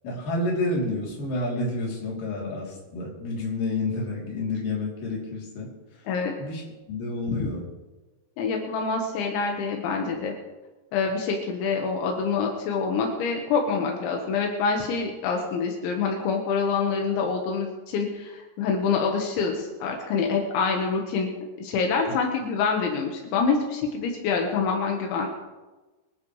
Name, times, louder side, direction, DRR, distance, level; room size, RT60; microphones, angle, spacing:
voice 1, 0.0-5.7 6.4-6.6 6.9-7.6 22.1-22.2, left 2 dB, 50° left, -3 dB, 4.6 m, -29 dB
voice 2, 8.4-10.3 10.9-21.3 21.6-25.3, left 5 dB, 80° left, 1 dB, 3.7 m, -26 dB
24.5 x 11.5 x 3.2 m, 1.2 s
omnidirectional pair, 5.2 m